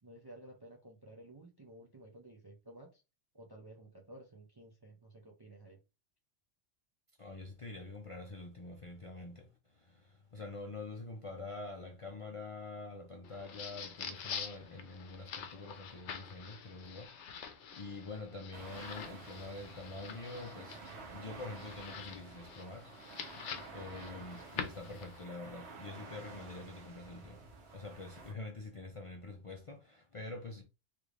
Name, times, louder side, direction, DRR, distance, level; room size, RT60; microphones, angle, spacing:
voice 1, 0.0-3.0 3.3-5.8, right 1 dB, 35° right, 0.4 m, -54 dB
voice 2, 7.2-30.6, left 2 dB, 45° left, 0.4 m, -46 dB
sound 1, 13.2-25.2, left 7 dB, 80° left, 0.9 m, -46 dB
sound 2, 18.5-28.3, right 4 dB, 70° right, 1.2 m, -51 dB
3.4 x 3.2 x 2.4 m
omnidirectional pair, 1.2 m